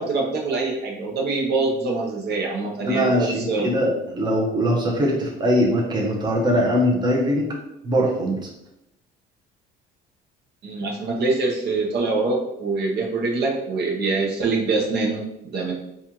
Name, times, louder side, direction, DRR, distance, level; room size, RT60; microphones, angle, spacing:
voice 1, 0.0-3.7 10.6-15.7, right 3 dB, 55° right, 0 dB, 0.8 m, -24 dB
voice 2, 2.9-7.5 7.8-8.4, equal, 20° right, -2 dB, 0.8 m, -21 dB
4.2 x 2.4 x 2.9 m, 0.83 s
cardioid pair, 115°, 20 cm